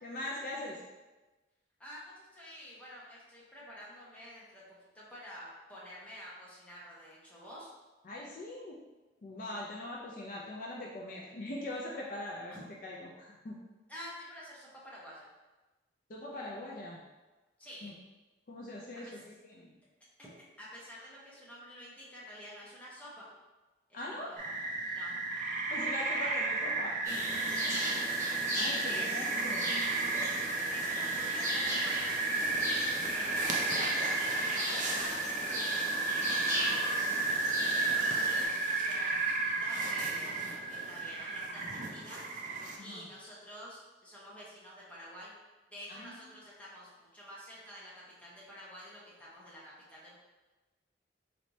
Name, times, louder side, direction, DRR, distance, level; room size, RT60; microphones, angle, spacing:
voice 1, 0.0-0.8 8.0-8.8 9.2-12.5 12.8-13.6 16.1-17.0 17.8-17.9 18.5-19.1 19.4-19.7 23.9-24.3 24.8-25.0 25.7-26.9 28.6-29.7 42.8-43.1 45.9-46.3, left 1 dB, 45° left, -3 dB, 0.4 m, -41 dB
voice 2, 1.8-4.6 4.9-7.7 12.5-12.6 13.9-15.3 17.6-17.9 19.0-19.1 20.2-23.3 23.9-24.6 24.9-25.1 27.6-27.9 28.8-29.2 29.9-34.0 34.3-42.3 42.8-45.4 45.7-47.9 48.2-50.1, equal, 10° left, -7 dB, 0.9 m, -49 dB
sound 1, 24.4-42.8, right 3 dB, 45° right, 0.4 m, -33 dB
sound 2, 27.0-38.5, equal, 15° right, 1.0 m, -37 dB
4.1 x 3.2 x 2.6 m, 1.1 s
head